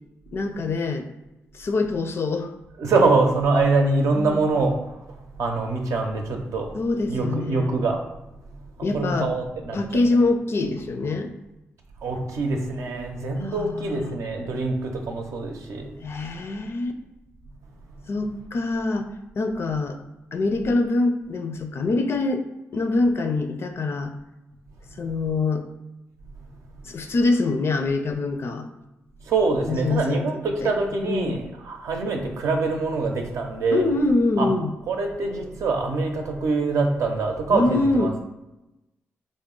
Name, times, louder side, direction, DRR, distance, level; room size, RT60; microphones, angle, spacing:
voice 1, 0.3-1.1 1.5-2.5 4.1-4.4 6.7-7.7 8.8-9.3 9.7-11.3 13.6-14.2 16.0-16.9 18.1-19.1 19.4-20.0 20.3-22.4 22.7-24.1 25.0-25.7 26.8-28.7 29.7-30.3 30.6-30.7 31.0-31.4 33.7-34.7 37.5-38.1, left 3 dB, 55° left, 6 dB, 0.4 m, -24 dB
voice 2, 2.8-6.7 7.0-8.0 8.5-9.8 12.0-15.9 24.9-25.0 29.2-33.9 34.4-34.5 34.9-38.2, right 3 dB, 80° right, 2 dB, 0.6 m, -24 dB
3.6 x 2.1 x 3.7 m, 0.96 s
cardioid pair, 60°, 5 cm